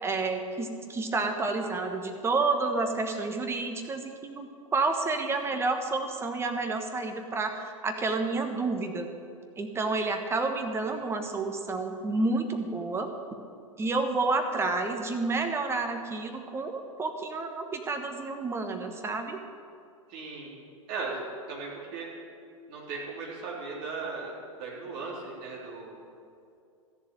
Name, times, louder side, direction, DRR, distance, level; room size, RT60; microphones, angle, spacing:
voice 1, 0.0-9.1 9.6-13.1 13.8-19.4, right 3 dB, 15° right, 5 dB, 1.3 m, -30 dB
voice 2, 20.1-20.5 20.9-22.1 22.7-26.0, right 4 dB, 45° right, -3 dB, 3.6 m, -37 dB
14.0 x 7.0 x 9.0 m, 2.4 s
figure-of-eight pair, 100°, 18 cm